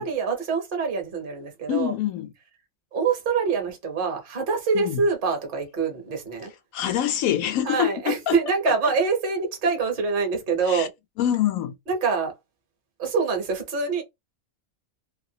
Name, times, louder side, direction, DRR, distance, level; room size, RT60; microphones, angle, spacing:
voice 1, 0.0-1.9 2.9-6.5 7.7-10.9 11.9-12.3 13.0-14.0, right 5 dB, 45° right, 1.0 m, -25 dB
voice 2, 1.7-2.3 4.7-5.0 6.7-8.4 8.7-8.8 10.6-10.9 11.2-11.8, left 11 dB, 75° left, 1.0 m, -25 dB
2.7 x 2.4 x 2.7 m
omnidirectional pair, 1.5 m